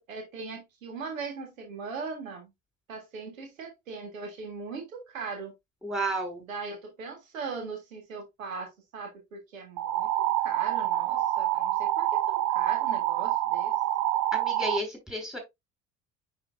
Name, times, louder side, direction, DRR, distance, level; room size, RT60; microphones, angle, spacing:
voice 1, 0.0-2.5 2.9-5.5 6.5-13.8, right 4 dB, 80° right, 1.7 m, -39 dB
voice 2, 5.8-6.4 14.3-15.4, right 1 dB, ahead, 4.9 m, -32 dB
sound 1, 9.8-14.8, right 13 dB, 60° right, 0.7 m, -27 dB
9.8 x 4.5 x 2.6 m
figure-of-eight pair, 50°, 39 cm